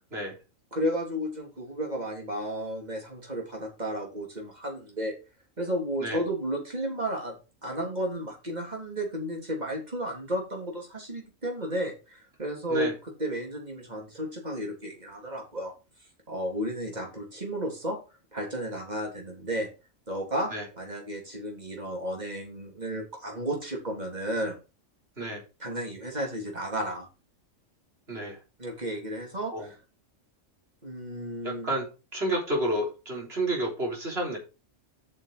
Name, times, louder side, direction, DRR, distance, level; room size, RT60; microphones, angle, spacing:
voice 1, 0.7-5.1 5.6-7.4 7.6-12.9 13.2-15.7 16.3-18.0 18.3-19.7 20.1-24.6 25.6-27.1 28.6-29.5 30.8-31.7, right 1 dB, 30° right, 0 dB, 3.8 m, -33 dB
voice 2, 28.1-28.4 29.5-29.7 31.4-31.9 32.1-34.4, right 1 dB, 50° right, -1 dB, 4.0 m, -30 dB
8.2 x 6.4 x 5.1 m, 0.30 s
omnidirectional pair, 1.4 m